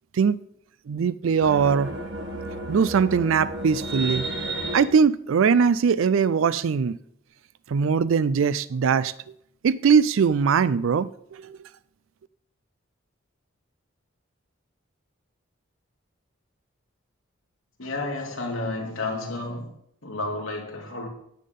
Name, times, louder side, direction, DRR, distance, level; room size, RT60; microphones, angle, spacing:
voice 1, 0.9-1.9 2.7-4.3 4.7-7.0 7.7-9.1 9.6-11.5, right 6 dB, 80° right, 0.4 m, -21 dB
sound 1, 1.4-4.8, right 1 dB, 55° right, 1.8 m, -32 dB
voice 2, 17.8-19.7 20.0-21.1, left 2 dB, 85° left, 2.5 m, -31 dB
10.0 x 7.5 x 5.3 m
head